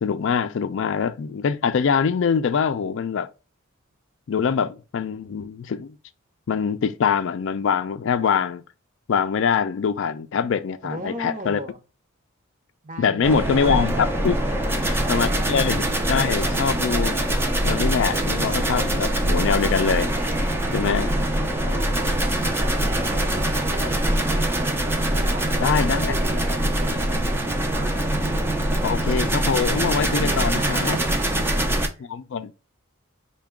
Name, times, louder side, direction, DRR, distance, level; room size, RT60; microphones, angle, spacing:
voice 1, 0.0-3.3 4.3-5.9 6.5-8.6 9.1-11.6 13.0-14.4 15.1-17.2 17.6-20.1 20.7-21.1 25.6-26.1 28.8-31.0 32.0-32.6, left 6 dB, 60° left, 0.4 m, -24 dB
voice 2, 10.8-11.8 12.8-13.8 14.5-15.2 15.4-15.5 20.8-21.3 21.6-24.8 25.1-27.9 30.1-32.1, right 1 dB, 35° right, 0.8 m, -38 dB
sound 1, 13.2-31.9, right 1 dB, 10° right, 0.4 m, -23 dB
4.6 x 2.2 x 3.5 m
head